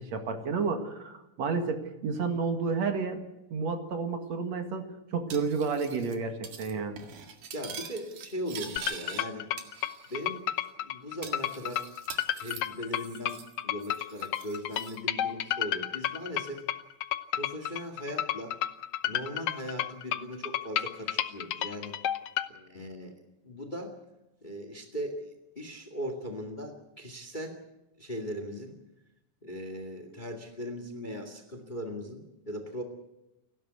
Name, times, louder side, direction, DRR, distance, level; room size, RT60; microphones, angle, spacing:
voice 1, 0.0-3.2 3.5-4.9 5.1-7.0, right 5 dB, 60° right, 6 dB, 2.9 m, -31 dB
Cutlery silverware, 5.3-6.2 6.4-6.7 7.0-9.3 9.6-10.3 10.6-10.7 11.2-13.5 13.8-15.0, right 6 dB, 80° right, 3.6 m, -44 dB
voice 2, 7.5-9.5 10.1-10.5 10.8-11.9 12.4-16.6 17.3-18.5 19.1-22.0 22.5-23.1 23.4-24.0 24.4-27.6 28.0-28.7 29.4-32.8, equal, 15° left, 7 dB, 1.9 m, -39 dB
sound 1, 8.8-22.5, left 12 dB, 65° left, 1.7 m, -31 dB
29.0 x 12.5 x 8.2 m, 0.94 s
omnidirectional pair, 3.5 m